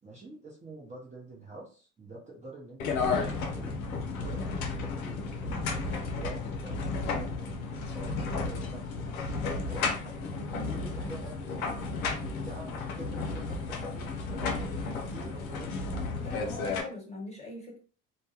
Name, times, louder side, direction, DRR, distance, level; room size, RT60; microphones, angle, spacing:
voice 1, 0.0-3.8 4.1-11.9 12.3-14.1 14.5-15.8, right 2 dB, 15° right, -5 dB, 0.7 m, -47 dB
sound 1, 2.8-16.8, left 4 dB, 85° left, 0.5 m, -33 dB
voice 2, 16.2-17.8, left 2 dB, 15° left, -2 dB, 1.1 m, -41 dB
2.2 x 2.1 x 2.8 m, 0.39 s
hypercardioid pair, 60°, 42 cm